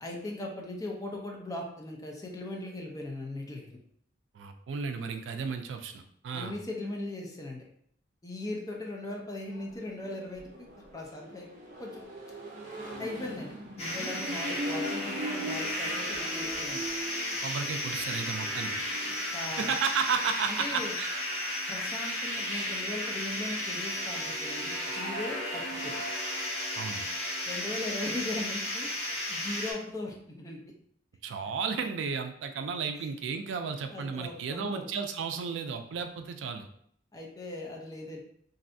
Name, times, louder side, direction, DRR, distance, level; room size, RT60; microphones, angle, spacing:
voice 1, 0.0-3.8 6.3-7.6 8.2-11.5 11.8-12.0 13.0-16.8 18.6-18.7 19.0-19.7 20.6-20.9 21.7-25.9 27.5-30.6 33.0-33.1 33.9-34.9 37.1-38.2, left 2 dB, 20° left, -1 dB, 0.5 m, -39 dB
voice 2, 4.3-6.5 17.4-18.8 19.6-21.1 26.8-27.1 31.2-36.7, right 5 dB, 75° right, 7 dB, 0.3 m, -33 dB
Accelerating revving vroom, 9.4-19.8, right 1 dB, 45° right, 0.7 m, -41 dB
sound 1, 13.8-29.7, left 1 dB, 35° left, 1.0 m, -34 dB
3.2 x 2.6 x 2.6 m, 0.66 s
head